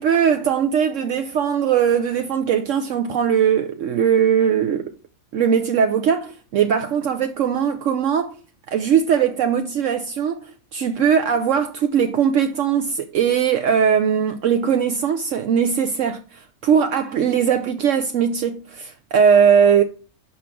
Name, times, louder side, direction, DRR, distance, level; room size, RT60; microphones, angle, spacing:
voice 1, 0.0-4.9 5.3-8.3 8.7-19.8, right 7 dB, 70° right, 1.0 m, -20 dB
6.0 x 5.8 x 6.1 m
omnidirectional pair, 1.4 m